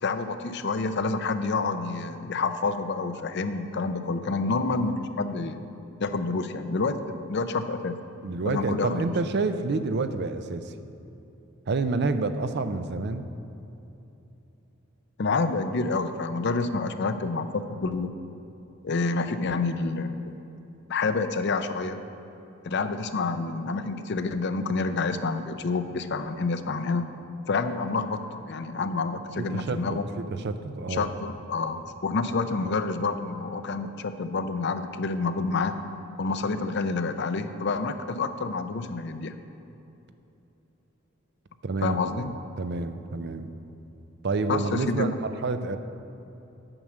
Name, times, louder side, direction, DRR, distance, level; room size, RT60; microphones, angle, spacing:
voice 1, 0.0-5.6 6.0-7.0 7.3-8.0 8.5-9.0 15.2-18.1 18.8-20.4 20.9-22.0 22.6-27.0 27.5-30.1 30.9-35.8 36.2-39.3 41.8-42.3 44.5-45.1, left 3 dB, 55° left, 10 dB, 0.5 m, -28 dB
voice 2, 8.2-10.7 11.7-13.2 29.4-30.0 30.3-31.1 41.6-42.2 42.6-43.5 44.2-45.8, right 3 dB, 55° right, 10 dB, 0.5 m, -28 dB
8.9 x 6.4 x 7.4 m, 2.9 s
head